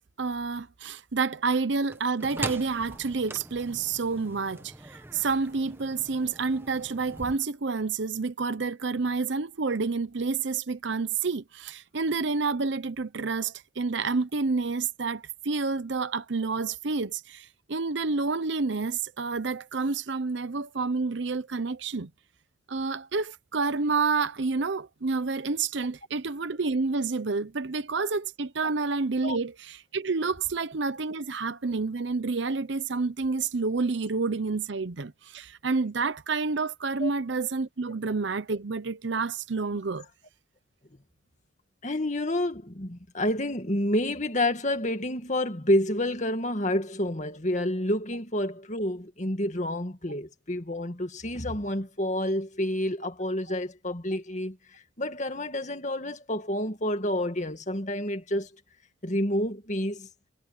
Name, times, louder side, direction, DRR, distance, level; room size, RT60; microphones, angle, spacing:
voice 1, 0.2-22.1 22.7-40.1, right 4 dB, 65° right, 0.7 m, -29 dB
sound 1, 1.9-7.4, right 2 dB, 10° right, 1.0 m, -41 dB
voice 2, 41.8-54.6 55.0-58.5 59.0-60.1, left 1 dB, 40° left, 2.1 m, -29 dB
head